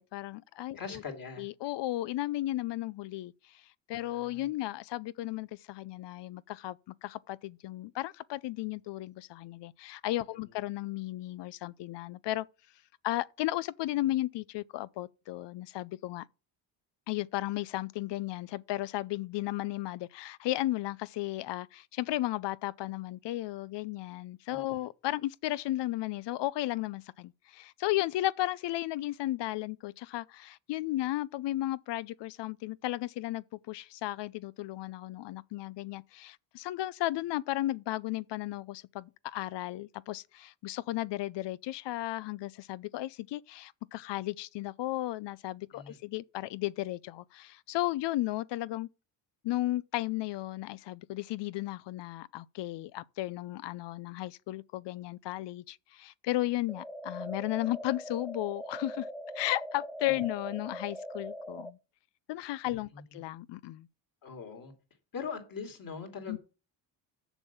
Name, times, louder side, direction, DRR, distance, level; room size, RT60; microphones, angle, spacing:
voice 1, 0.0-1.0 1.4-3.6 3.9-12.5 13.0-16.2 17.1-48.9 49.4-59.1 59.3-61.8 62.3-63.9 66.3-66.4, left 16 dB, 60° left, 0.5 m, -34 dB
voice 2, 0.7-1.4 3.9-4.5 10.3-10.5 24.5-24.9 45.7-46.0 60.1-60.2 62.7-63.2 64.2-64.7 65.1-66.4, left 5 dB, 45° left, 2.9 m, -42 dB
sound 1, 56.7-61.7, equal, ahead, 0.4 m, -41 dB
7.1 x 5.4 x 7.0 m
cardioid pair, 100°, 48 cm